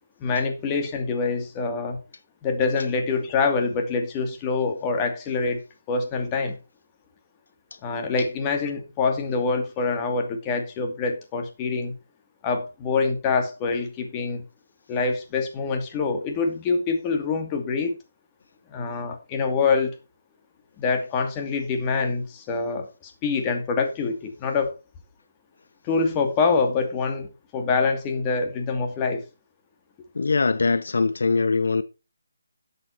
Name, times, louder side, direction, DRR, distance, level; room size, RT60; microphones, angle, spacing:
voice 1, 0.2-2.0 2.4-5.6 5.9-6.6 7.8-11.9 12.4-14.4 14.9-18.0 18.7-19.9 20.8-24.8 25.8-29.2, left 4 dB, 20° left, 2.4 m, -25 dB
voice 2, 30.1-31.8, left 4 dB, 70° left, 0.7 m, -22 dB
12.5 x 8.0 x 4.5 m
figure-of-eight pair, 160°, 0 cm